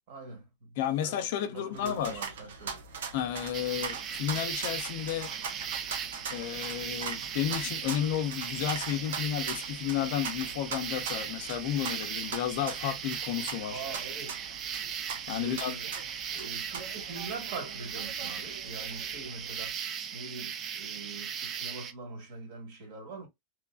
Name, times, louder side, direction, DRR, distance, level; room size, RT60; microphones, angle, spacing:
voice 1, 0.1-2.8 13.7-14.4 15.4-15.9 16.3-23.3, right 3 dB, 45° right, 1.4 m, -43 dB
voice 2, 0.8-2.2 3.1-5.3 6.3-13.8 15.3-15.7, left 10 dB, 50° left, 0.5 m, -32 dB
sound 1, 1.7-19.7, right 5 dB, 80° right, 0.7 m, -42 dB
sound 2, 3.5-21.9, right 8 dB, 20° right, 0.3 m, -38 dB
3.1 x 2.4 x 2.2 m
supercardioid pair, 175°, 0 cm